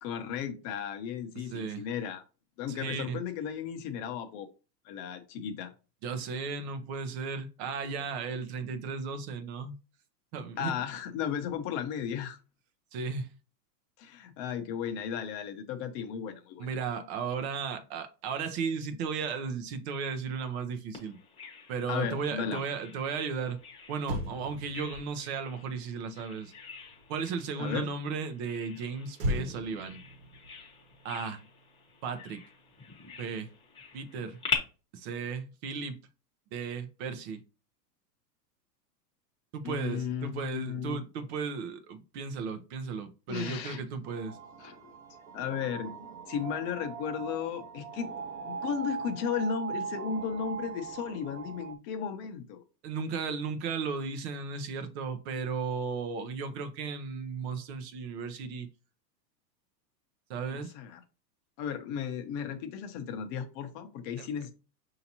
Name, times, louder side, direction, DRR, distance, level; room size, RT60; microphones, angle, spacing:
voice 1, 0.0-2.2 2.6-4.5 4.8-5.7 10.6-12.4 14.0-16.7 21.9-22.6 27.6-27.9 39.6-41.0 43.3-43.8 44.6-44.9 45.3-45.9 46.3-48.1 48.4-52.6 60.5-61.0 61.6-64.5, left 7 dB, 35° left, 0.8 m, -35 dB
voice 2, 1.5-1.8 2.7-3.2 6.0-9.8 10.3-10.7 12.9-13.3 16.6-21.2 21.7-23.6 23.9-26.5 27.1-30.0 31.0-31.4 32.0-32.4 33.2-33.5 33.9-34.4 34.9-36.0 36.5-37.4 39.5-44.4 52.8-58.7 60.3-60.7 64.2-64.3, right 5 dB, 40° right, 0.7 m, -35 dB
Bird vocalization bird call bird song, 20.9-34.6, left 5 dB, 10° left, 1.0 m, -43 dB
Motor vehicle (road), 23.6-23.7 24.0-27.5 29.1-31.7 32.0-32.3, equal, 70° right, 1.3 m, -39 dB
sound 1, 44.0-51.7, right 6 dB, 90° right, 0.9 m, -40 dB
5.6 x 2.8 x 2.8 m
hypercardioid pair, 140°, 50 cm